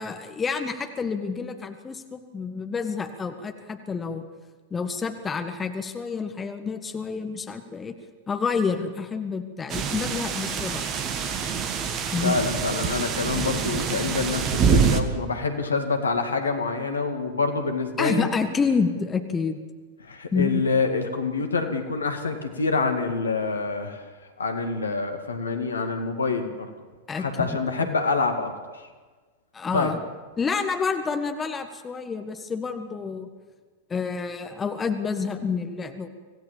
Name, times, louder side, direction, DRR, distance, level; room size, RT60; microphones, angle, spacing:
voice 1, 0.0-4.3 4.7-7.9 8.3-10.9 12.1-12.4 18.0-19.6 20.3-20.6 27.1-27.9 29.5-30.0 30.4-33.3 33.9-36.1, left 5 dB, 15° left, 7 dB, 1.6 m, -28 dB
sound 1, 9.7-15.0, right 6 dB, 35° right, 1.7 m, -25 dB
voice 2, 12.2-18.3 20.0-24.0 24.4-26.5 27.1-28.5 29.7-29.9, left 4 dB, 75° left, 6 dB, 2.2 m, -26 dB
26.0 x 17.0 x 7.3 m, 1.4 s
figure-of-eight pair, 90°, 0 cm